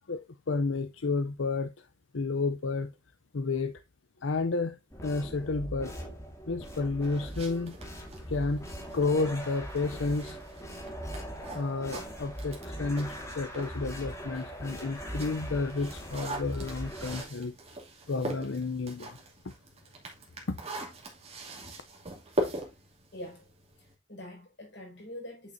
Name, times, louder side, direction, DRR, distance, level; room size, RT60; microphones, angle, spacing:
voice 1, 0.5-1.9 2.1-2.9 3.3-3.8 4.2-4.8 5.0-5.9 6.5-7.8 8.3-8.7 8.9-10.4 11.5-17.5 18.1-19.2 20.5-20.6, left 3 dB, 90° left, 0.7 m, -31 dB
sound 1, 4.9-17.2, equal, 15° left, 2.0 m, -41 dB
sound 2, 7.0-13.8 14.2-23.9, right 1 dB, 35° right, 2.6 m, -41 dB
voice 2, 23.1-23.5 23.8-25.5, left 1 dB, 60° left, 6.0 m, -44 dB
8.9 x 6.4 x 2.7 m
head